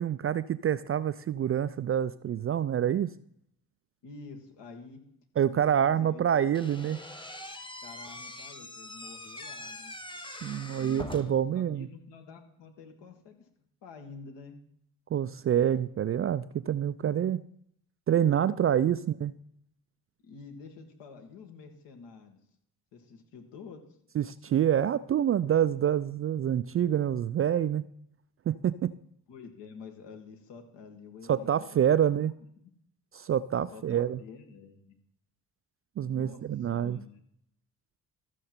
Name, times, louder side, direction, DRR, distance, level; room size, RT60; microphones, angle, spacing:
voice 1, 0.0-3.1 5.4-7.0 10.4-11.9 15.1-17.4 18.1-19.3 24.2-27.8 28.5-28.9 31.3-32.3 33.1-34.2 36.0-37.0, right 9 dB, 30° right, 16 dB, 0.4 m, -27 dB
voice 2, 4.0-5.0 5.5-6.3 7.8-9.9 10.6-11.1 11.5-13.5 13.8-14.6 20.2-22.4 22.9-24.0 29.3-32.3 33.7-35.0 36.0-37.2, left 5 dB, 65° left, 5 dB, 1.9 m, -49 dB
Slam / Squeak, 6.5-11.5, left 1 dB, 10° left, 1.2 m, -43 dB
13.5 x 6.4 x 4.4 m, 0.73 s
hypercardioid pair, 45°, 45 cm